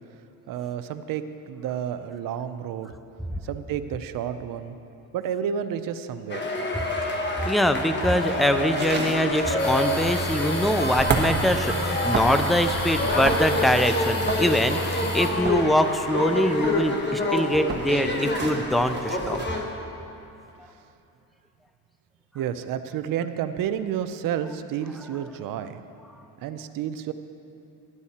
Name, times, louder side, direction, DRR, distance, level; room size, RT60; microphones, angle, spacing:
voice 1, 0.5-2.9 3.5-4.8 5.1-6.9 22.3-25.8 26.4-27.1, right 9 dB, 70° right, 10 dB, 0.7 m, -30 dB
sound 1, 6.3-19.6, left 2 dB, 30° left, 1.2 m, -28 dB
voice 2, 7.4-19.4, equal, ahead, 9 dB, 0.4 m, -23 dB
sound 2, 8.8-19.5, right 4 dB, 30° right, 1.4 m, -33 dB
sound 3, 9.6-15.3, equal, 80° left, 2.7 m, -31 dB
13.0 x 11.0 x 4.2 m, 2.8 s
cardioid pair, 115°, 35 cm